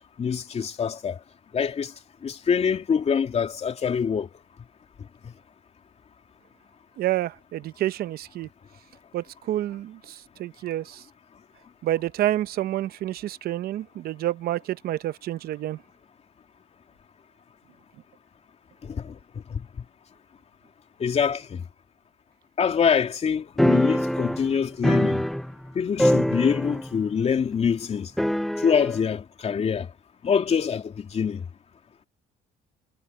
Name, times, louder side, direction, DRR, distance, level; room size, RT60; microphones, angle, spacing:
voice 1, 0.2-1.2 1.5-1.9 2.2-4.3 5.2-5.3 18.8-19.2 19.5-19.7 21.0-21.6 22.6-25.2 25.7-28.1 28.6-29.9 30.2-31.4, left 7 dB, 40° left, 2.9 m, -25 dB
voice 2, 7.0-8.5 9.1-11.0 11.8-15.8, right 13 dB, 65° right, 0.8 m, -28 dB
sound 1, 23.6-25.7 26.0-27.0 27.3-27.4 28.2-29.0, equal, ahead, 0.6 m, -23 dB
cardioid pair, 110°, 17 cm